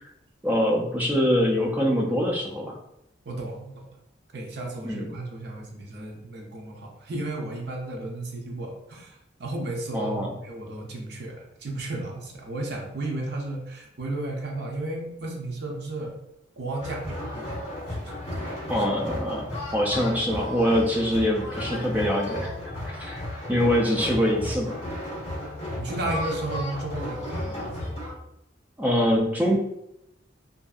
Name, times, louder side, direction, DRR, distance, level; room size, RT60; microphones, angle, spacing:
voice 1, 0.4-2.8 4.8-5.2 9.9-10.3 18.7-22.5 23.0-23.2 23.5-24.8 28.8-29.6, equal, 10° right, -1 dB, 0.4 m, -24 dB
voice 2, 3.3-3.8 4.3-16.1 16.6-17.6 18.0-18.7 25.8-27.8, right 2 dB, 60° right, 0 dB, 0.6 m, -34 dB
sound 1, 16.8-28.1, left 1 dB, 30° left, 1.3 m, -34 dB
2.6 x 2.4 x 2.3 m, 0.81 s
head